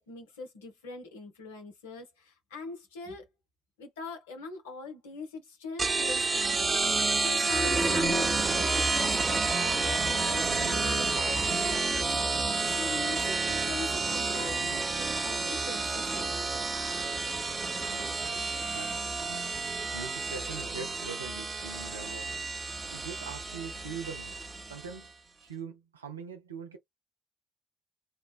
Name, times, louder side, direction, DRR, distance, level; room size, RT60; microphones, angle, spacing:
voice 1, 0.0-3.3 3.8-8.3 8.5-12.0 12.7-16.4 17.3-17.4, left 3 dB, 80° left, 0.8 m, -42 dB
sound 1, 5.8-24.9, right 3 dB, 35° right, 0.8 m, -30 dB
voice 2, 17.9-22.6 22.9-24.4 24.7-25.1 25.4-26.8, right 5 dB, 90° right, 0.5 m, -43 dB
3.0 x 2.1 x 2.4 m
figure-of-eight pair, 40°, 0 cm